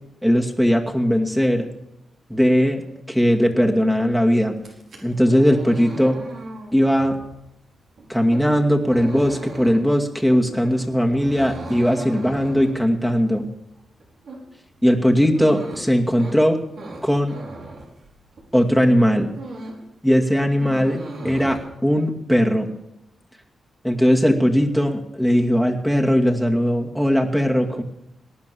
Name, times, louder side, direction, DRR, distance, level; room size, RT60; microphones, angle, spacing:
voice 1, 0.2-1.7 2.3-2.8 3.1-4.5 5.0-6.2 6.7-7.2 8.1-13.5 14.8-16.6 17.0-17.3 18.5-19.3 20.0-21.0 21.2-22.7 23.8-27.8, equal, ahead, 2 dB, 2.3 m, -19 dB
sound 1, 4.5-18.6 18.9-19.9 20.2-21.6, right 2 dB, 70° right, 4.5 m, -38 dB
19.0 x 11.0 x 7.0 m, 0.88 s
cardioid pair, 70°, 0 cm